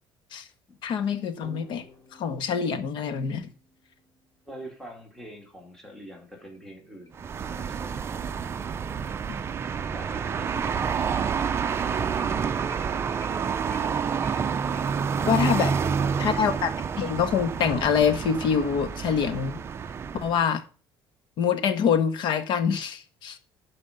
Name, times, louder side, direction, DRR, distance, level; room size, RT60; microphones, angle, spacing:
voice 1, 0.8-1.8 2.1-3.5 15.2-15.7 16.2-16.7 17.0-19.6 20.2-20.6 21.4-23.4, left 7 dB, 55° left, 1.5 m, -25 dB
sound 1, 1.4-4.6 6.0-6.1 6.5-6.6 7.1-7.2 7.6-17.6, left 2 dB, 30° left, 4.0 m, -51 dB
voice 2, 4.4-8.3 9.9-11.2 15.6-16.4, equal, 5° left, 2.7 m, -44 dB
sound 2, 7.1-20.4, right 6 dB, 25° right, 0.6 m, -29 dB
12.0 x 5.2 x 5.2 m
cardioid pair, 155°, 10 cm